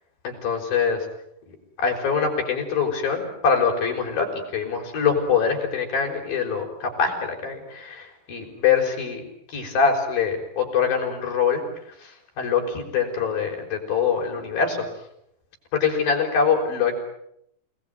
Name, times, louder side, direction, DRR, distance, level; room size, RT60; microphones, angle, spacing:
voice 1, 0.2-1.1 1.5-9.2 9.5-11.6 12.0-14.9 15.7-17.0, left 6 dB, 75° left, 2 dB, 7.1 m, -24 dB
29.5 x 19.5 x 9.5 m, 0.75 s
omnidirectional pair, 4.1 m